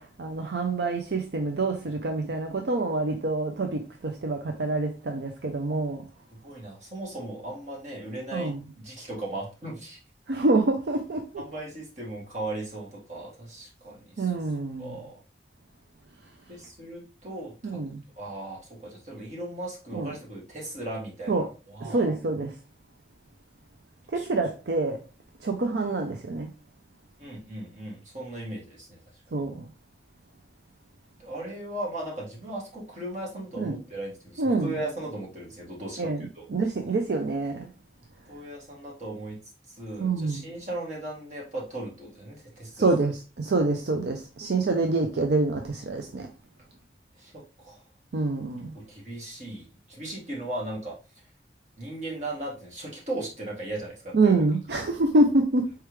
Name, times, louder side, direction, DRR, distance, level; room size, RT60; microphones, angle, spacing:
voice 1, 0.0-6.0 8.3-8.6 10.3-11.2 14.2-15.1 17.6-18.0 19.9-20.1 21.3-21.5 21.8-22.6 24.1-25.0 25.4-26.5 29.3-29.7 33.6-33.8 34.4-34.8 36.0-37.7 40.0-40.4 42.8-46.3 48.1-48.7 54.1-55.7, right 2 dB, 70° right, 0.5 m, -26 dB
voice 2, 6.3-10.0 11.4-14.3 14.8-15.2 16.5-17.8 18.2-22.0 24.1-24.3 27.2-29.2 31.2-36.5 38.3-39.4 39.7-43.0 47.2-47.8 48.7-51.0 51.8-54.3, right 1 dB, 40° right, 1.7 m, -37 dB
4.6 x 3.4 x 3.1 m
head